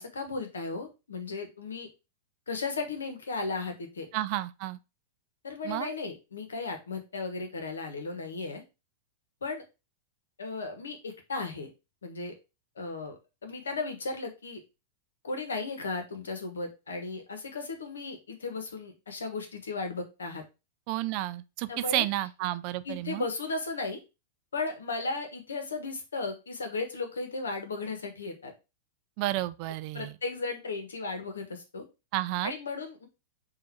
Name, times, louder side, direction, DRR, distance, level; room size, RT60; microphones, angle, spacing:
voice 1, 0.0-1.9 2.5-4.1 5.4-8.6 9.4-9.6 10.4-11.7 12.0-12.4 12.8-14.6 15.2-20.4 21.7-22.0 22.8-24.0 24.5-28.5 29.9-31.8 32.4-33.1, left 3 dB, 90° left, 1.0 m, -35 dB
voice 2, 4.1-4.8 5.6-5.9 20.9-23.3 29.2-30.1 32.1-32.5, right 16 dB, 50° right, 0.4 m, -31 dB
3.8 x 2.5 x 4.4 m
hypercardioid pair, 115°, 0 cm